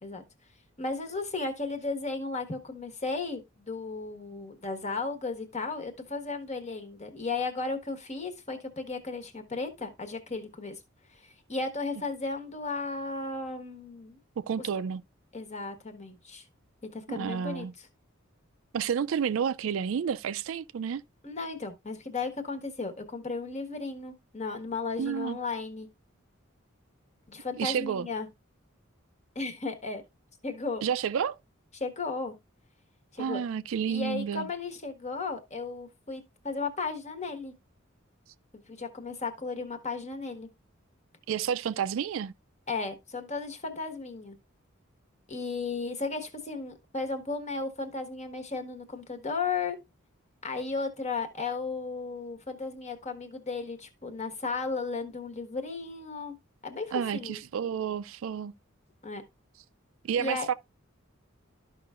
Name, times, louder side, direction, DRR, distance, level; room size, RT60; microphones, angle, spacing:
voice 1, 0.8-10.8 11.1-14.2 15.3-16.4 16.9-17.7 21.2-25.9 27.3-28.3 29.3-30.0 30.4-30.8 31.7-32.3 33.1-33.4 33.9-37.5 38.7-40.5 42.7-44.4 45.3-49.8 50.4-56.3 56.6-57.4 59.0-59.2 60.2-60.5, left 3 dB, 35° left, 1.4 m, -35 dB
voice 2, 14.4-15.0 17.1-17.7 18.7-21.0 25.0-25.4 27.6-28.1 30.8-31.4 33.2-34.5 41.3-42.3 56.9-58.5 60.0-60.5, right 7 dB, 70° right, 0.4 m, -30 dB
12.5 x 5.6 x 2.4 m
head